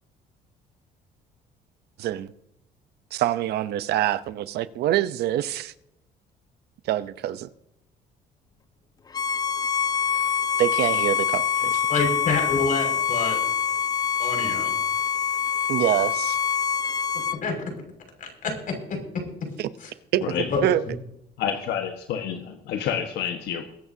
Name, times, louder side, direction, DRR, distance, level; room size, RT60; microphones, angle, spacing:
voice 1, 2.0-2.3 3.1-5.7 6.9-7.5 10.6-11.4 11.7-11.8 15.7-16.4 19.6-19.7 20.1-20.3 20.6-20.8, right 13 dB, 75° right, 14 dB, 0.8 m, -25 dB
Bowed string instrument, 9.1-17.4, left 7 dB, 25° left, 0.5 m, -25 dB
voice 2, 11.9-13.4 14.2-14.8 17.4-17.5 18.2-18.5 18.9-19.0 19.8-19.9 20.5-20.7, left 4 dB, 55° left, 3 dB, 6.0 m, -27 dB
voice 3, 21.4-23.6, left 8 dB, 80° left, 5 dB, 1.5 m, -29 dB
22.0 x 11.0 x 2.8 m, 0.80 s
cardioid pair, 110°, 17 cm